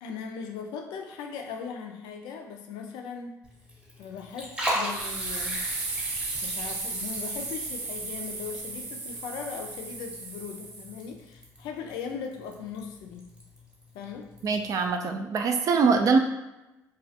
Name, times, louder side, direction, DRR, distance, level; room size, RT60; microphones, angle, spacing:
voice 1, 0.0-3.4 4.0-5.6 6.4-13.3 13.9-14.3, left 6 dB, 80° left, 3 dB, 0.4 m, -39 dB
Liquid, 3.4-14.9, equal, 10° right, 0.8 m, -39 dB
sound 1, 4.9-11.0, right 3 dB, 75° right, 0.8 m, -35 dB
voice 2, 14.4-16.2, right 4 dB, 50° right, 5 dB, 0.3 m, -23 dB
2.3 x 2.1 x 2.7 m, 0.99 s
supercardioid pair, 75°, 7 cm